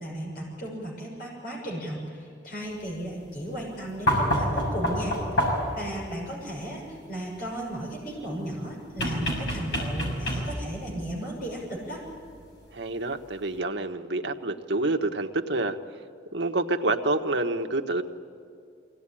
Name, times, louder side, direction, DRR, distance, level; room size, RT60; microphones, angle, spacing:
voice 1, 0.0-12.0, right 1 dB, 50° left, -2 dB, 6.2 m, -35 dB
sound 1, 4.1-5.8 9.0-10.7 12.3-12.4, equal, 70° left, 6.4 m, -27 dB
voice 2, 12.7-15.8 16.3-18.0, right 2 dB, 70° right, 5 dB, 1.3 m, -27 dB
24.0 x 17.5 x 10.0 m, 2.5 s
head